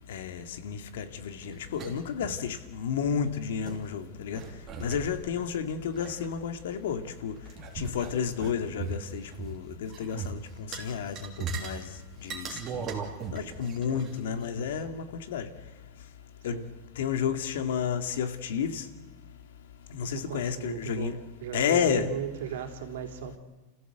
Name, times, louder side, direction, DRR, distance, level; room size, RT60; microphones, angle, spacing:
voice 1, 0.1-4.4 4.8-7.4 7.7-11.9 12.2-12.8 13.3-15.5 16.4-16.6 17.0-18.9 19.9-21.1 21.5-22.1, left 7 dB, 85° left, 8 dB, 2.2 m, -31 dB
sound 1, 1.3-2.5 2.8-2.9 3.2-3.8 4.3-6.9 7.4-9.5 9.8-10.3 10.7-11.8 12.2-14.9, right 5 dB, 25° right, 2.8 m, -39 dB
voice 2, 20.0-23.4, right 9 dB, 75° right, 5 dB, 3.4 m, -37 dB
29.5 x 15.0 x 8.1 m, 1.2 s
supercardioid pair, 175°, 0 cm